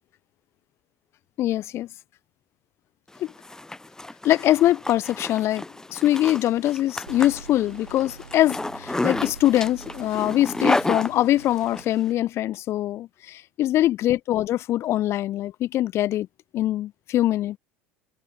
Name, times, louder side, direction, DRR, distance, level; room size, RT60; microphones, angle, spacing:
voice 1, 1.4-1.9 3.2-3.3 4.2-5.6 5.9-16.3 16.5-17.6, left 14 dB, 45° left, 1.0 m, -23 dB
Zipper (clothing), 3.2-11.8, left 2 dB, 10° left, 3.5 m, -31 dB
sound 1, 7.1-11.8, right 6 dB, 80° right, 3.4 m, -45 dB
figure-of-eight pair, 65°, 6 cm